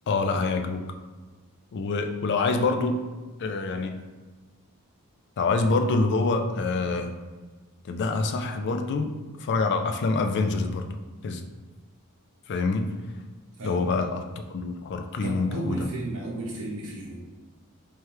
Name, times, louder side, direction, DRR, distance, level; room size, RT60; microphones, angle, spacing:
voice 1, 0.1-0.8 1.7-3.0 3.4-3.9 5.4-7.1 7.8-10.9 11.2-11.4 12.5-12.9 13.6-14.2 14.5-15.9, left 3 dB, 50° left, 6 dB, 0.4 m, -26 dB
voice 2, 13.6-13.9 15.2-17.2, right 2 dB, 65° right, -4 dB, 0.6 m, -34 dB
3.5 x 3.2 x 3.0 m, 1.3 s
head